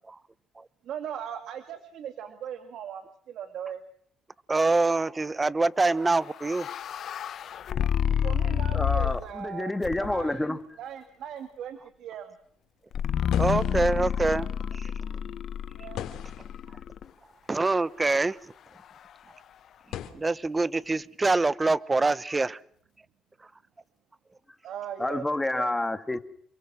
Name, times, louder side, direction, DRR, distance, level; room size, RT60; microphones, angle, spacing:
voice 1, 0.9-3.8 8.2-9.7 10.0-12.3 15.8-16.1 24.6-25.2 25.5-25.7, right 9 dB, 75° right, 2.1 m, -39 dB
voice 2, 4.5-6.7 13.4-14.5 14.7-14.9 17.5-18.4 20.1-22.6, right 3 dB, 25° right, 1.0 m, -25 dB
sound 1, 6.0-9.4 9.8-10.4 12.9-17.0, left 9 dB, 65° left, 0.9 m, -29 dB
sound 2, 6.8-20.1, left 11 dB, 85° left, 3.0 m, -46 dB
voice 3, 8.7-10.6 25.0-26.2, left 1 dB, 10° left, 2.0 m, -28 dB
29.0 x 22.5 x 6.1 m
cardioid pair, 90°, 0 cm